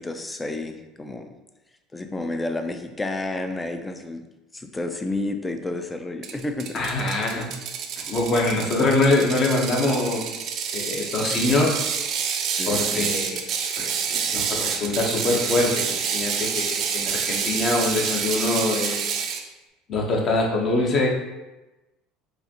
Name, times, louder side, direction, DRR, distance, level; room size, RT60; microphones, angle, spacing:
voice 1, 0.0-1.3 1.9-4.2 4.5-6.8 8.5-8.7 12.6-13.1, left 2 dB, 15° left, 7 dB, 0.4 m, -31 dB
Ratchet pawl, 6.2-19.4, right 7 dB, 55° right, 0.4 m, -28 dB
voice 2, 6.7-7.5 8.0-10.4 10.7-11.8 12.7-13.4 13.8-19.0 19.9-21.1, left 2 dB, 45° left, -1 dB, 0.9 m, -24 dB
4.1 x 2.5 x 2.8 m, 1.0 s
supercardioid pair, 95°, 0 cm